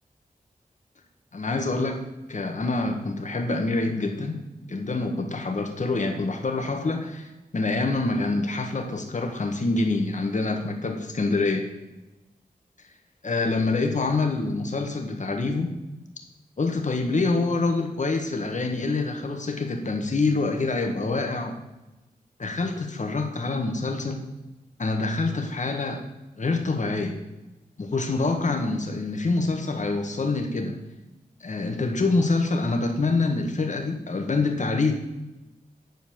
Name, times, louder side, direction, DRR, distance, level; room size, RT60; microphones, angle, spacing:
voice 1, 1.3-2.0 2.3-4.4 4.7-11.7 13.2-15.7 16.6-21.6 22.4-24.2 24.8-26.0 26.4-27.2 27.8-30.8 31.4-34.9, left 3 dB, 55° left, 4 dB, 1.7 m, -26 dB
10.5 x 4.4 x 7.2 m, 1.0 s
cardioid pair, 60°, 15 cm